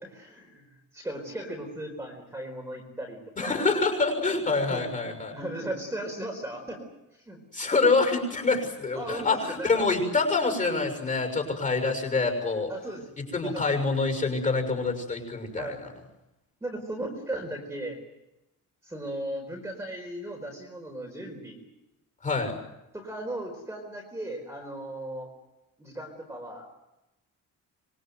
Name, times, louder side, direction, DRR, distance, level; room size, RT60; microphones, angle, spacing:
voice 1, 0.0-3.7 4.6-6.8 7.1-7.4 8.9-9.8 12.7-13.0 13.4-13.6 15.6-15.8 16.6-18.0 18.8-21.6 22.9-25.3 25.8-26.8, right 1 dB, 10° right, 2 dB, 4.3 m, -37 dB
voice 2, 3.4-5.3 7.5-12.7 13.3-15.9 22.2-22.6, left 3 dB, 25° left, 5 dB, 6.6 m, -26 dB
26.0 x 23.5 x 7.9 m, 0.92 s
cardioid pair, 180°, 33 cm